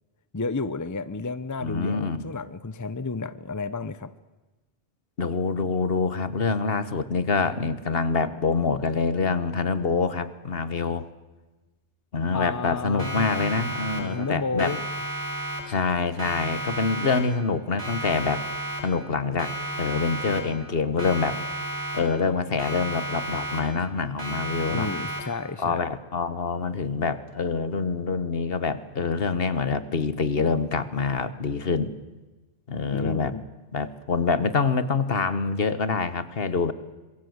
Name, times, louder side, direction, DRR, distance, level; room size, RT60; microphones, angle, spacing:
voice 1, 0.3-4.1 12.3-13.7 14.0-14.8 24.7-25.9 32.9-33.4, left 3 dB, 20° left, 15 dB, 0.7 m, -32 dB
voice 2, 1.6-2.3 5.2-11.1 12.1-14.8 15.7-18.4 18.8-19.5 19.8-21.4 21.9-24.9 25.6-31.9 32.7-33.3 33.7-36.7, left 4 dB, 60° left, 14 dB, 1.5 m, -26 dB
Siren, 13.0-14.3 14.6-15.9 16.2-17.5 17.8-19.1 19.4-20.7 21.0-22.3 22.6-23.9 24.2-25.5, right 1 dB, 80° right, 5.3 m, -33 dB
26.0 x 22.0 x 8.0 m, 1.2 s
omnidirectional pair, 1.1 m